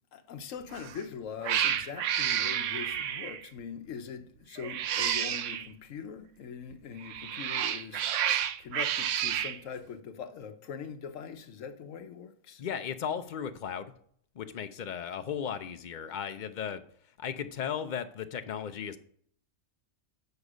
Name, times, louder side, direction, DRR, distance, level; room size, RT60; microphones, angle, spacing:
voice 1, 0.1-12.6, left 6 dB, 80° left, 1.2 m, -42 dB
Cat, 0.7-1.0 1.4-3.5 4.6-5.7 7.0-9.6, right 10 dB, 75° right, 0.9 m, -30 dB
voice 2, 12.6-13.9 14.3-16.8 17.2-19.0, left 8 dB, 50° left, 0.6 m, -36 dB
8.1 x 5.3 x 4.9 m
omnidirectional pair, 1.3 m